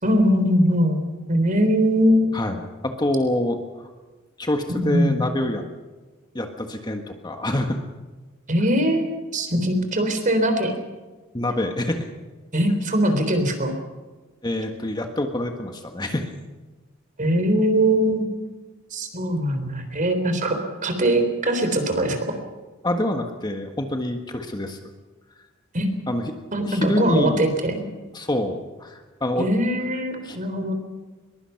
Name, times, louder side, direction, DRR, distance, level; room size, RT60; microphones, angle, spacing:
voice 1, 0.0-2.5 4.8-5.2 8.5-9.1 9.3-10.7 12.5-13.7 17.2-18.3 18.9-22.3 25.7-25.9 26.5-27.8 29.4-30.7, equal, 40° right, 7 dB, 3.8 m, -21 dB
voice 2, 2.3-3.9 4.4-5.6 6.3-7.8 11.3-12.1 14.4-16.3 22.8-24.8 26.1-26.3 26.6-27.5 28.1-29.5 30.2-30.4, left 1 dB, 20° left, 5 dB, 1.5 m, -26 dB
22.5 x 22.5 x 5.9 m, 1.3 s
head